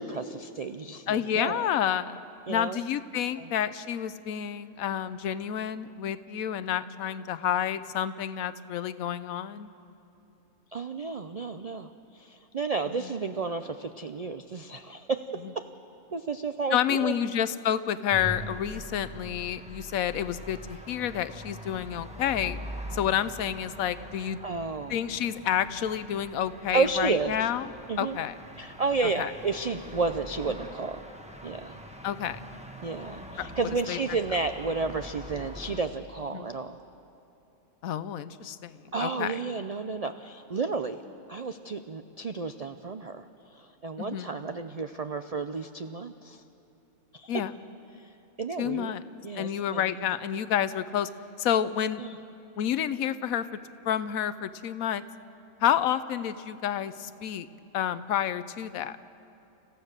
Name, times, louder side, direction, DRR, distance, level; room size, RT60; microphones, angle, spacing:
voice 1, 0.0-1.7 2.5-2.8 3.3-3.5 10.7-15.3 15.5-15.7 16.1-17.1 24.4-25.0 26.7-27.3 27.9-28.2 28.6-31.0 31.4-31.8 32.8-36.8 38.9-41.0 41.3-43.2 43.5-46.4 47.1-47.3 48.0-48.1 48.4-49.0 49.2-50.0 52.0-52.2, right 4 dB, 85° right, 9 dB, 0.3 m, -32 dB
voice 2, 1.1-2.2 2.5-9.7 13.0-13.1 16.7-22.6 22.9-24.4 24.9-27.7 28.0-28.3 29.2-29.3 32.0-32.4 33.4-33.5 33.9-34.0 36.3-36.5 37.8-39.3 44.0-44.3 47.3-47.5 48.6-49.0 49.4-51.1 51.4-52.0 52.6-53.5 53.8-55.0 55.6-57.5 57.7-59.0, left 10 dB, 75° left, 14 dB, 1.1 m, -29 dB
sound 1, 18.1-35.8, equal, 5° right, 1.0 m, -43 dB
30.0 x 15.5 x 6.6 m, 3.0 s
omnidirectional pair, 1.5 m